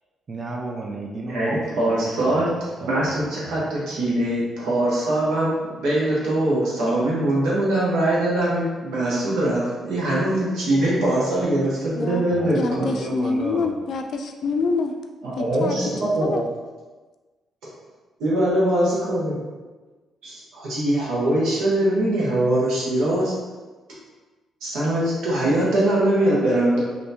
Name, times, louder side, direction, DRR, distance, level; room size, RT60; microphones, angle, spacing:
voice 1, 0.3-3.6 12.3-13.8, right 2 dB, 40° right, 1 dB, 0.5 m, -33 dB
voice 2, 1.3-2.5 2.8-12.9 15.2-16.5 18.2-19.4 20.2-23.3 24.6-26.8, right 1 dB, 85° right, -6 dB, 1.1 m, -22 dB
voice 3, 11.9-12.2 12.5-14.9 15.6-15.8 16.2-16.4, left 4 dB, 65° left, 5 dB, 0.3 m, -26 dB
3.3 x 2.8 x 2.8 m, 1.3 s
cardioid pair, 90°, 0 cm